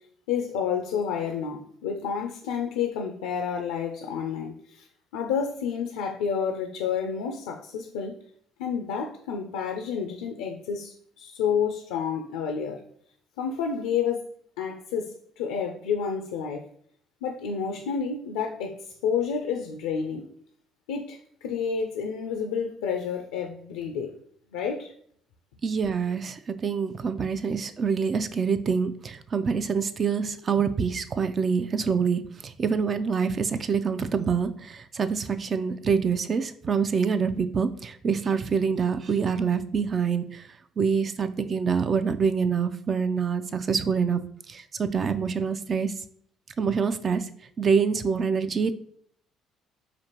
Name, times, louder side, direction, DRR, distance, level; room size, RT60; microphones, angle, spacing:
voice 1, 0.3-4.9 5.1-8.1 8.6-12.8 13.4-14.3 14.6-16.7 17.2-20.3 20.9-24.1 24.5-24.9, left 7 dB, 80° left, 4 dB, 0.4 m, -30 dB
voice 2, 25.6-40.5 40.8-44.2 44.5-45.9 46.6-47.3 47.6-48.7, right 6 dB, 45° right, 10 dB, 0.3 m, -26 dB
5.0 x 2.5 x 2.9 m, 0.63 s
hypercardioid pair, 55°, 0 cm